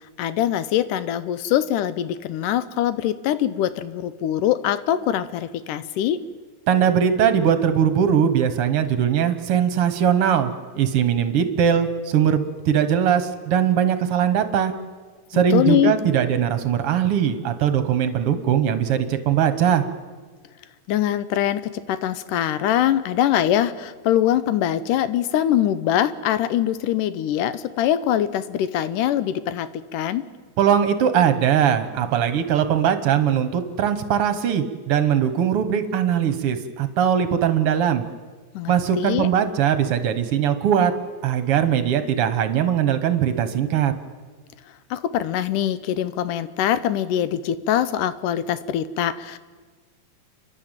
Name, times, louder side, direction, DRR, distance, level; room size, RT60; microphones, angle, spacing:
voice 1, 0.0-6.2 15.3-15.9 20.9-30.2 38.5-39.3 44.9-49.4, left 11 dB, 90° left, 14 dB, 2.4 m, -23 dB
voice 2, 6.7-14.7 15.3-19.8 30.6-38.0 38.7-40.9 41.2-43.9, right 9 dB, 60° right, 10 dB, 1.7 m, -20 dB
29.5 x 11.5 x 9.0 m, 1.4 s
omnidirectional pair, 3.6 m